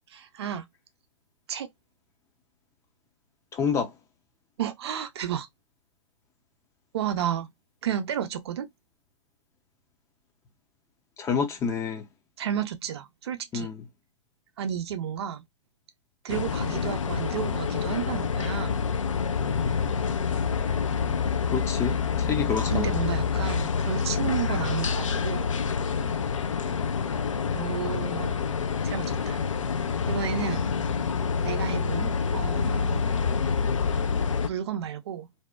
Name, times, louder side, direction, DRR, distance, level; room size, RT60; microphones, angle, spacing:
voice 1, 0.1-0.6 1.5-1.7 4.6-5.5 6.9-7.5 7.8-8.7 12.4-13.7 14.6-15.4 16.2-18.8 22.7-25.5 27.5-28.4 28.8-29.4 30.1-30.6 31.4-33.1 34.5-35.3, right 9 dB, 55° right, 0.6 m, -32 dB
voice 2, 3.5-3.9 11.2-12.1 13.5-13.9 21.5-22.9, left 6 dB, 20° left, 0.4 m, -28 dB
sound 1, 16.3-34.5, left 6 dB, 75° left, 0.5 m, -27 dB
2.6 x 2.1 x 2.2 m
figure-of-eight pair, 110°, 16 cm